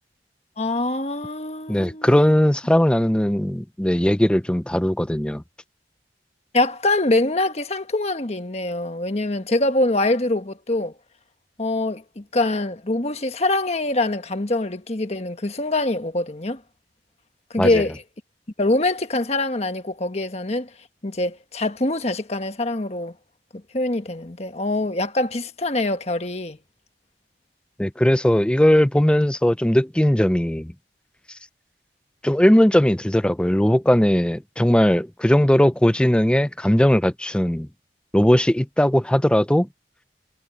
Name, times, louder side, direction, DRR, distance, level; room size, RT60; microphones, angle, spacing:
voice 1, 0.6-2.3 6.5-10.9 11.6-16.6 17.5-18.0 18.6-20.7 21.0-23.1 23.7-26.6, left 2 dB, 35° left, 1.4 m, -24 dB
voice 2, 1.7-5.4 17.6-17.8 27.8-30.7 32.2-37.7 38.1-39.7, equal, 5° left, 0.4 m, -18 dB
head